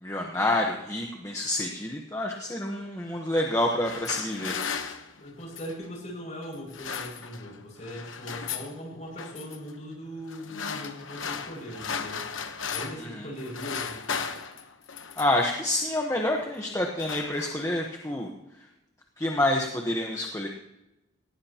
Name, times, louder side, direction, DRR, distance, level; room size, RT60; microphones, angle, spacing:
voice 1, 0.0-4.5 13.0-13.3 15.2-18.3 19.2-20.5, left 1 dB, 15° left, 1 dB, 1.1 m, -28 dB
sound 1, 3.6-5.8 6.5-7.6 7.8-8.7 9.2-9.6 10.3-13.1 13.4-15.5 16.2-16.5 16.8-17.9, left 6 dB, 85° left, 1.1 m, -36 dB
voice 2, 5.2-12.2 12.6-14.3, equal, 35° left, -1 dB, 6.4 m, -40 dB
18.5 x 17.5 x 3.0 m, 0.95 s
head